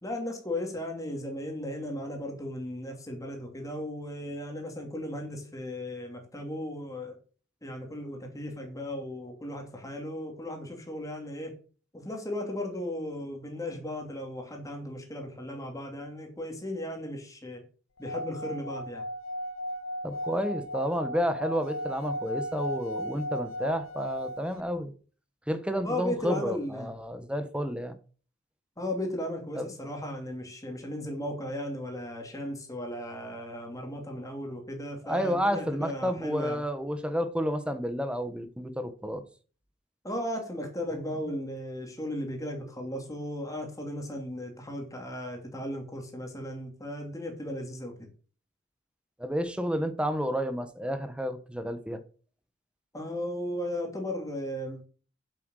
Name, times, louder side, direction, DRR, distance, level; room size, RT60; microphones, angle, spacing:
voice 1, 0.0-7.2 7.6-11.6 11.9-17.6 18.0-19.1 25.8-26.9 28.8-36.6 40.0-48.1 52.9-54.9, left 1 dB, 15° left, 2.9 m, -36 dB
Singing / Glass, 18.0-24.6, equal, 90° left, 0.8 m, -36 dB
voice 2, 20.0-24.9 25.5-27.9 29.5-29.7 35.0-39.2 49.2-52.0, equal, 5° right, 1.2 m, -31 dB
8.5 x 7.9 x 6.5 m
head